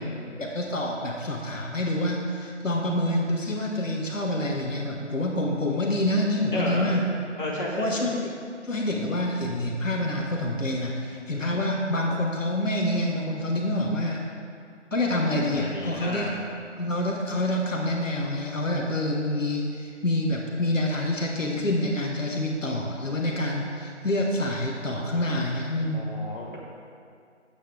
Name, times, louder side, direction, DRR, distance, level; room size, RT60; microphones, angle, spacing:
voice 1, 0.4-7.1 7.8-8.3 8.6-14.2 14.9-16.3 16.8-26.1, left 1 dB, 85° left, -1 dB, 1.7 m, -27 dB
voice 2, 6.5-6.9 7.4-8.0 11.4-11.8 15.5-16.4 25.9-26.6, left 1 dB, 40° left, -5 dB, 2.2 m, -33 dB
12.0 x 8.7 x 3.6 m, 2.3 s
figure-of-eight pair, 175°, 37 cm